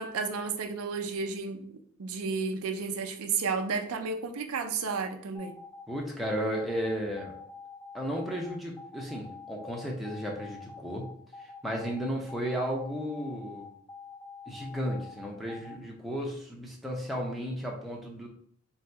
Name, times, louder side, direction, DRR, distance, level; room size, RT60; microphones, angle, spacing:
voice 1, 0.0-5.6, right 5 dB, 85° right, 5 dB, 0.5 m, -32 dB
sound 1, 5.3-15.7, left 4 dB, 25° left, 1.1 m, -46 dB
voice 2, 5.9-7.3 7.9-11.1 11.4-13.7 14.5-18.3, equal, ahead, -2 dB, 0.6 m, -34 dB
3.9 x 2.8 x 3.3 m, 0.63 s
head